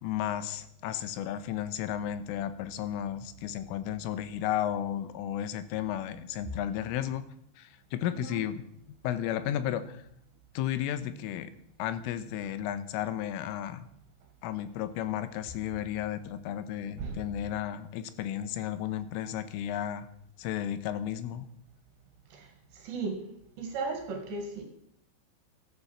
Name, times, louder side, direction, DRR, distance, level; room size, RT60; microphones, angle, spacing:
voice 1, 0.0-7.2 7.6-8.6 9.0-10.0 10.6-11.5 11.8-13.9 14.4-20.1 20.4-21.5, left 11 dB, 85° left, 12 dB, 3.6 m, -33 dB
voice 2, 22.3-23.2 23.6-24.6, right 4 dB, 65° right, 5 dB, 3.8 m, -36 dB
14.0 x 13.5 x 7.2 m, 0.72 s
omnidirectional pair, 5.7 m